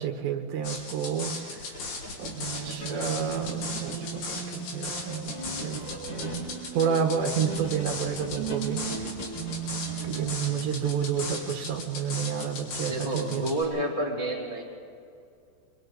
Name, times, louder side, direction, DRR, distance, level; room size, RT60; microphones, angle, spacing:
voice 1, 0.0-1.6 2.2-2.3 2.6-5.8 6.1-6.5 6.7-8.8 10.0-13.5, right 8 dB, 80° right, 5 dB, 3.5 m, -30 dB
sound 1, 0.6-13.6, left 4 dB, 75° left, 5.5 m, -37 dB
sound 2, 1.4-11.4, left 2 dB, 35° left, 2.2 m, -43 dB
sound 3, 2.3-10.7, right 7 dB, 60° right, 3.1 m, -37 dB
voice 2, 12.9-14.6, right 1 dB, 15° left, -5 dB, 2.6 m, -29 dB
28.0 x 23.5 x 4.0 m, 2.4 s
omnidirectional pair, 5.1 m